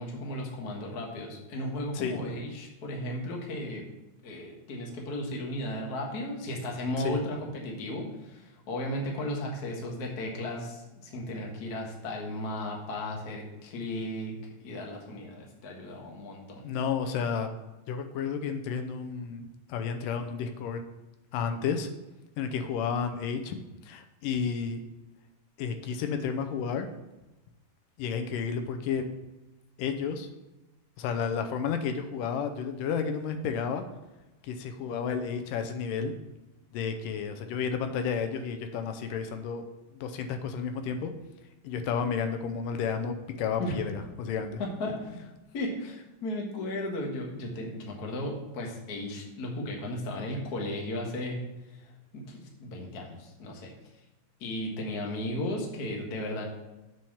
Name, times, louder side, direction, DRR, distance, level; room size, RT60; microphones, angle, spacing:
voice 1, 0.0-3.9 4.2-14.3 14.6-16.7 43.6-43.8 44.6-45.2 45.5-51.4 51.8-53.7 54.4-56.4, left 1 dB, 45° left, 0 dB, 1.2 m, -35 dB
voice 2, 16.6-17.5 17.9-20.8 21.3-21.9 22.4-23.6 23.9-24.8 25.6-26.9 28.0-29.1 29.8-30.3 31.0-33.8 34.4-36.1 36.7-39.7 39.9-41.1 41.6-44.6, left 6 dB, 80° left, 7 dB, 2.3 m, -31 dB
7.5 x 4.6 x 7.1 m, 1.0 s
omnidirectional pair, 3.9 m